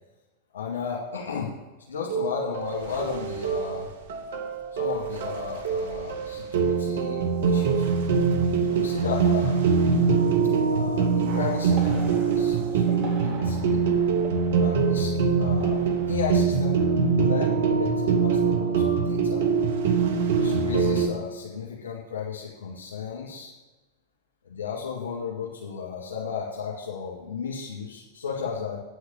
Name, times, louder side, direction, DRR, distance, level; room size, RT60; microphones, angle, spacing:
voice 1, 0.5-1.5 1.9-3.9 4.7-7.9 8.7-9.6 10.7-13.8 14.6-15.8 16.1-19.5 20.3-23.5 24.4-28.8, left 6 dB, 65° left, -4 dB, 2.2 m, -34 dB
sound 1, 2.1-21.1, right 5 dB, 60° right, 1.2 m, -24 dB
sound 2, 11.3-17.7 18.0-18.3, right 3 dB, 40° right, 2.4 m, -43 dB
9.2 x 6.3 x 8.6 m, 1.2 s
figure-of-eight pair, 90°, 0 cm